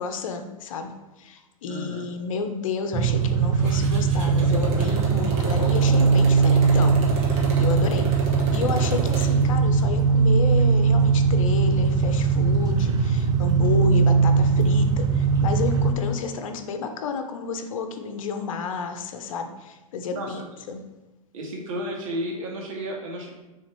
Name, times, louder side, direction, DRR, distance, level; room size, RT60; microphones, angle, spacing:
voice 1, 0.0-20.8, left 5 dB, 65° left, 7 dB, 0.8 m, -31 dB
voice 2, 1.7-2.1 20.1-20.4 21.3-23.3, equal, 65° right, -1 dB, 1.9 m, -32 dB
sound 1, 2.9-15.9, right 5 dB, 20° right, 0.5 m, -20 dB
Motorcycle, 3.6-9.5, right 2 dB, 35° right, 1.4 m, -33 dB
6.5 x 3.6 x 4.5 m, 1.1 s
hypercardioid pair, 125°, 18 cm